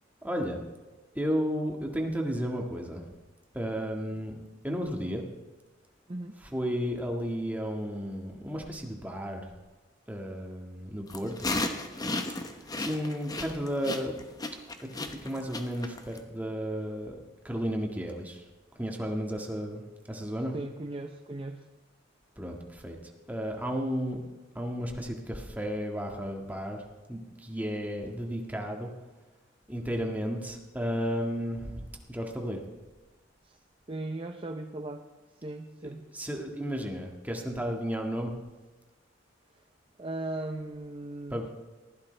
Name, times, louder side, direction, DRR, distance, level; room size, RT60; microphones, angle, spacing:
voice 1, 0.2-0.7 1.2-3.1 3.5-4.4 4.6-5.2 6.4-9.5 10.1-11.5 12.4-14.2 14.9-18.4 18.8-20.5 22.4-23.0 23.3-24.2 24.6-28.9 29.7-32.6 35.8-38.3 41.3-41.5, equal, 10° right, 1 dB, 1.8 m, -33 dB
sound 1, 11.1-16.2, left 2 dB, 20° left, 1.0 m, -34 dB
voice 2, 20.5-21.6 33.4-33.6 33.9-35.0 35.4-36.1 39.5-39.6 40.0-41.4, right 2 dB, 30° right, 5 dB, 0.7 m, -38 dB
20.5 x 15.0 x 3.4 m, 1.2 s
head